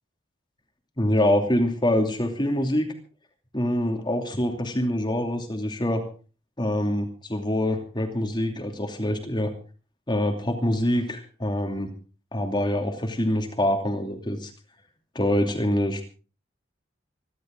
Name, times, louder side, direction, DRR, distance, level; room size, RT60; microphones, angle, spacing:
voice 1, 1.0-2.9 3.5-6.0 6.6-9.5 10.1-11.9 12.3-14.5 15.1-16.0, left 1 dB, 20° left, 3 dB, 2.7 m, -25 dB
26.5 x 12.0 x 3.8 m, 0.36 s
head